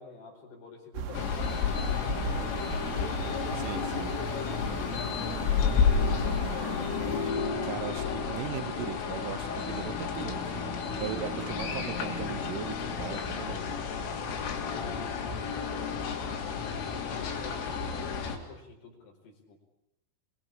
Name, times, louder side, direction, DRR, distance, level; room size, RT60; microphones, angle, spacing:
voice 1, 0.0-2.5 4.5-7.3 11.0-12.1 12.6-15.1 16.2-18.1 18.3-19.6, left 5 dB, 55° left, 3 dB, 6.7 m, -48 dB
sound 1, 0.9-7.3, right 6 dB, 65° right, 4.2 m, -38 dB
sound 2, 1.1-18.4, left 6 dB, 85° left, 5.9 m, -31 dB
voice 2, 3.5-4.1 7.6-10.8 11.0-13.6, right 12 dB, 90° right, 13 dB, 3.8 m, -38 dB
27.0 x 23.0 x 8.6 m, 0.83 s
omnidirectional pair, 5.6 m